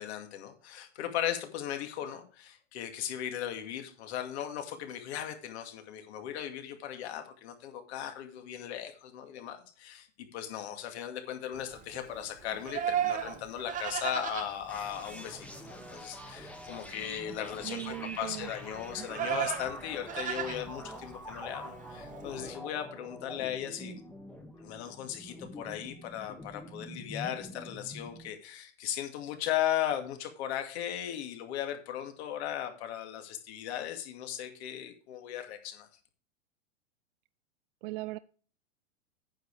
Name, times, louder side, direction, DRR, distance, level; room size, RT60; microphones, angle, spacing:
voice 1, 0.0-23.9 24.6-35.9, left 10 dB, 60° left, 6 dB, 2.3 m, -37 dB
Livestock farm animals working animals, 11.5-22.5, right 9 dB, 20° right, 1.1 m, -37 dB
sound 1, 14.7-28.3, left 1 dB, 5° left, 1.4 m, -46 dB
voice 2, 17.6-18.5 37.8-38.2, right 17 dB, 50° right, 15 dB, 0.4 m, -38 dB
9.2 x 7.0 x 4.8 m, 0.41 s
hypercardioid pair, 120°, 38 cm